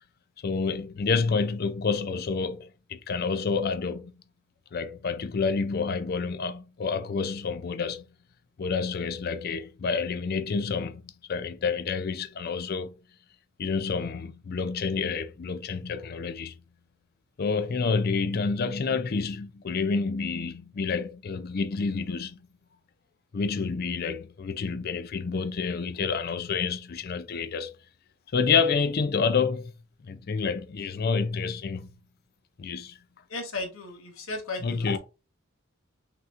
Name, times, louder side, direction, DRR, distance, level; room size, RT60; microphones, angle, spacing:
voice 1, 0.4-4.1 4.7-8.1 8.6-13.0 13.6-16.6 17.4-22.4 23.3-27.7 28.3-29.7 30.1-31.9 32.6-33.0 34.6-35.0, left 5 dB, 45° left, 0.4 m, -28 dB
voice 2, 33.3-35.0, left 2 dB, 80° left, 1.2 m, -35 dB
5.8 x 2.9 x 2.5 m
head